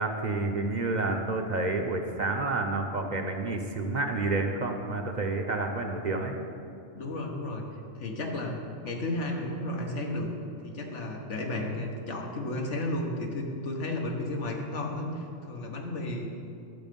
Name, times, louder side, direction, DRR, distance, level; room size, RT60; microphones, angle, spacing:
voice 1, 0.0-6.4, right 3 dB, 45° right, 4 dB, 0.8 m, -29 dB
voice 2, 6.9-7.7 7.9-10.3 10.6-16.3, left 1 dB, 90° left, 1 dB, 1.6 m, -33 dB
11.5 x 7.6 x 5.3 m, 2.5 s
omnidirectional pair, 1.2 m